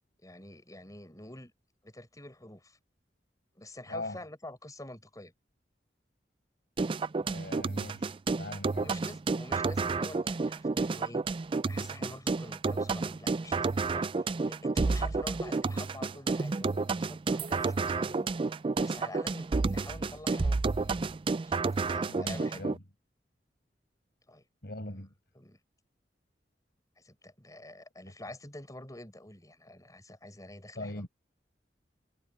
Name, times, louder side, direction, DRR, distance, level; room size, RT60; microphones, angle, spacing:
voice 1, 0.2-1.5 1.8-2.8 3.6-5.3 8.8-18.3 18.8-21.0 21.4-22.7 24.3-24.5 25.4-25.6 27.0-31.1, left 1 dB, 20° left, 7.4 m, -47 dB
voice 2, 3.9-4.2 7.2-8.9 22.1-22.8 24.6-25.1 30.7-31.1, left 2 dB, 65° left, 5.8 m, -41 dB
sound 1, 6.8-22.8, right 3 dB, 30° right, 0.4 m, -30 dB
head